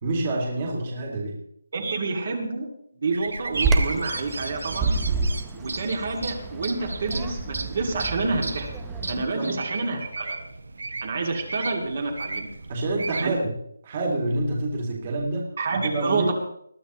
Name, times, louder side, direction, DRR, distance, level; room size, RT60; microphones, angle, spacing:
voice 1, 0.0-1.4 9.3-9.6 12.7-13.6 13.8-16.3, right 2 dB, 25° right, -1 dB, 2.5 m, -27 dB
voice 2, 1.7-2.7 3.0-5.0 5.5-8.7 9.1-10.4 11.0-12.5 13.2-13.4 15.6-16.3, right 3 dB, 45° right, 1 dB, 2.5 m, -28 dB
sound 1, 3.1-13.3, right 3 dB, 70° right, 1.2 m, -35 dB
Bird vocalization bird call bird song, 3.5-9.2, right 3 dB, 5° right, 0.8 m, -29 dB
21.0 x 13.5 x 3.1 m, 0.71 s
hypercardioid pair, 175°, 0 cm